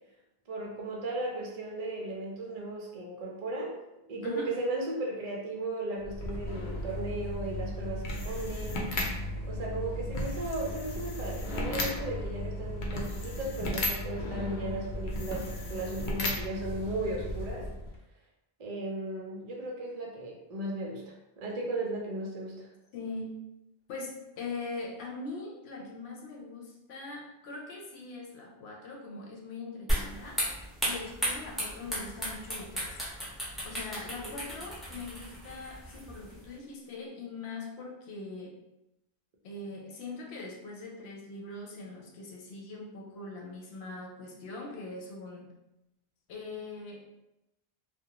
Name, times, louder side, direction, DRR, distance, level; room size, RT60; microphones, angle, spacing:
voice 1, 0.5-3.8 4.1-8.8 9.5-17.7 18.6-22.7 34.2-34.3, right 2 dB, 55° right, -1 dB, 0.4 m, -36 dB
sound 1, 6.0-18.0, left 1 dB, 60° left, 0.6 m, -35 dB
voice 2, 22.9-23.3 23.9-30.4 30.8-33.0 33.6-38.5 39.4-45.5 46.3-47.0, left 3 dB, 85° left, -1 dB, 0.9 m, -41 dB
sound 2, 29.9-36.5, equal, ahead, 0.5 m, -35 dB
2.5 x 2.1 x 2.8 m, 0.91 s
omnidirectional pair, 1.1 m